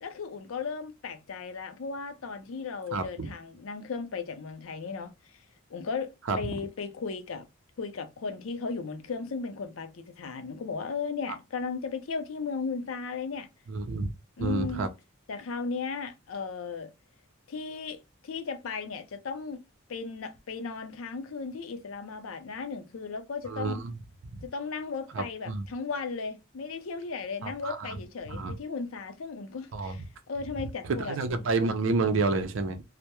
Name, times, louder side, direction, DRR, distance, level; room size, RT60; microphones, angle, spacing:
voice 1, 0.0-5.1 5.7-7.5 7.8-13.5 14.4-14.9 15.3-16.9 17.5-19.6 19.9-23.8 24.4-31.5, left 4 dB, 90° left, 0.5 m, -36 dB
voice 2, 2.9-3.3 6.3-6.4 13.7-14.1 14.4-14.9 23.5-24.0 24.3-24.4 25.1-25.7 27.4-27.9 28.3-28.5 29.7-30.0 30.9-32.8, right 3 dB, 70° right, 0.4 m, -29 dB
2.2 x 2.0 x 2.8 m
head